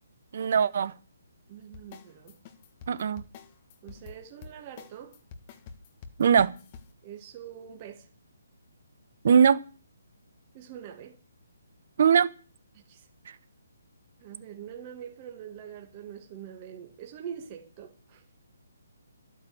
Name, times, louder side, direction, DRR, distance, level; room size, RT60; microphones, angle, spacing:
voice 1, 0.3-0.9 2.9-3.2 6.2-6.5 9.2-9.6 12.0-12.3, right 7 dB, 50° right, 1.1 m, -21 dB
voice 2, 1.5-2.4 3.8-5.2 7.0-8.1 10.5-11.2 12.7-13.1 14.2-18.2, right 9 dB, 25° right, 2.1 m, -44 dB
sound 1, 1.7-6.9, left 5 dB, 30° left, 1.4 m, -47 dB
12.0 x 9.2 x 8.0 m
hypercardioid pair, 160°, 0 cm